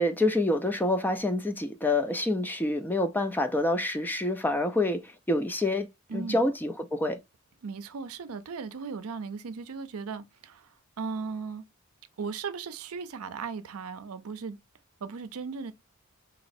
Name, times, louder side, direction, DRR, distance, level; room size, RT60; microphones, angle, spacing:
voice 1, 0.0-5.9 6.1-7.2, left 1 dB, 10° left, 0.3 m, -27 dB
voice 2, 6.1-6.5 7.6-11.6 12.2-14.6 15.0-15.7, right 5 dB, 80° right, 0.5 m, -37 dB
4.0 x 2.9 x 2.5 m
head